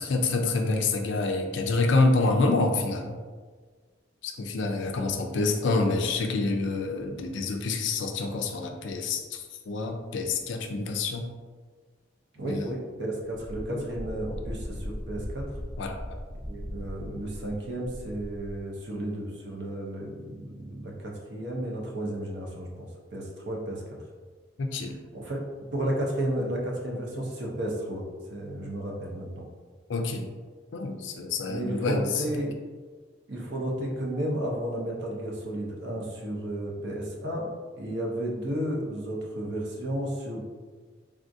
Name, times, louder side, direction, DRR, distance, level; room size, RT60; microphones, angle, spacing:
voice 1, 0.0-3.2 4.2-11.3 12.5-12.6 13.7-13.9 15.8-16.0 24.6-24.9 29.9-30.3 30.7-32.2, left 3 dB, 65° left, 4 dB, 0.4 m, -27 dB
voice 2, 12.3-15.5 16.5-23.8 24.8-25.4 25.7-28.0 28.3-29.4 31.5-32.6 33.3-37.5 37.8-40.4, right 1 dB, 55° right, -2 dB, 0.6 m, -33 dB
Wind, 13.3-18.6, equal, 5° left, 0.5 m, -38 dB
3.5 x 2.4 x 2.6 m, 1.5 s
head